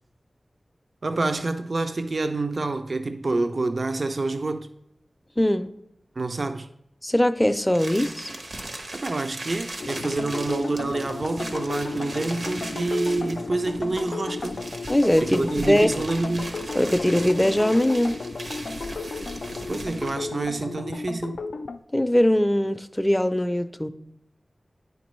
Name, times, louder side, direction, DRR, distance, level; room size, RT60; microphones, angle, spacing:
voice 1, 1.0-4.7 6.2-6.7 8.9-14.7 15.2-16.6 19.7-21.4, right 2 dB, 60° right, 0.4 m, -27 dB
voice 2, 5.4-5.7 7.0-8.3 14.9-15.9 16.7-18.2 21.9-23.9, left 1 dB, 15° left, 0.4 m, -21 dB
sound 1, 7.7-20.3, right 2 dB, 85° right, 1.0 m, -38 dB
sound 2, 9.8-21.8, left 3 dB, 90° left, 0.3 m, -34 dB
9.3 x 5.2 x 3.1 m
wide cardioid pair, 55°, 0 cm